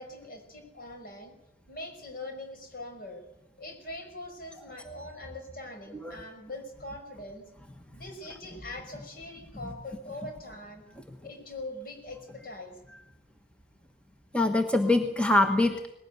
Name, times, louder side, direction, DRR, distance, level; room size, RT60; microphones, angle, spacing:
voice 1, 0.0-1.3 1.7-3.2 3.6-7.5 7.9-10.8 11.2-12.8, left 1 dB, 50° left, 4 dB, 5.7 m, -42 dB
voice 2, 14.3-15.9, left 2 dB, 5° left, 5 dB, 1.2 m, -24 dB
20.0 x 17.5 x 9.5 m, 0.85 s
head